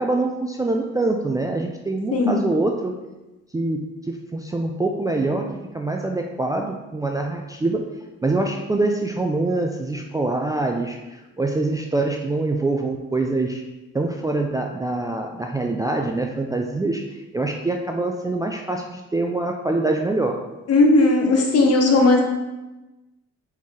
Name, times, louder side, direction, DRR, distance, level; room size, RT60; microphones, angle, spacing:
voice 1, 0.0-3.0 3.5-7.8 8.2-11.0 11.4-13.6 13.9-17.0 17.3-20.4, right 2 dB, 10° right, 1 dB, 0.3 m, -24 dB
voice 2, 20.7-22.2, left 2 dB, 55° left, 1 dB, 0.9 m, -16 dB
4.2 x 3.0 x 3.6 m, 1.0 s
cardioid pair, 90°, 30 cm